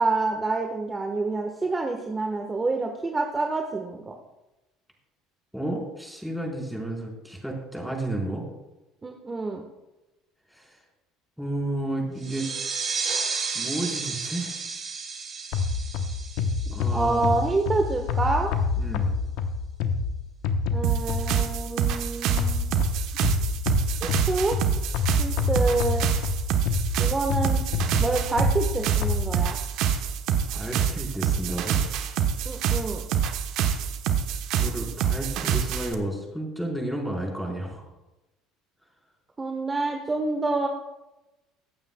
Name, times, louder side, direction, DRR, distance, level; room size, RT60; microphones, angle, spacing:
voice 1, 0.0-4.1 9.0-9.6 16.9-18.5 20.7-22.7 24.0-24.6 25.2-26.1 27.0-27.6 28.0-29.6 32.4-33.0 39.4-40.7, right 3 dB, 25° right, 3 dB, 1.3 m, -27 dB
voice 2, 5.5-8.5 10.5-10.8 11.4-12.5 13.5-14.6 16.7-17.4 18.8-19.1 30.5-31.8 34.6-37.8, right 1 dB, ahead, -2 dB, 4.4 m, -32 dB
sound 1, 12.2-17.5, right 5 dB, 45° right, 3.8 m, -32 dB
sound 2, 15.5-21.6 22.4-29.2, left 4 dB, 65° left, 0.9 m, -27 dB
sound 3, 20.8-35.9, right 8 dB, 65° right, 1.0 m, -26 dB
23.0 x 8.8 x 2.3 m, 1.0 s
hypercardioid pair, 70°, 0 cm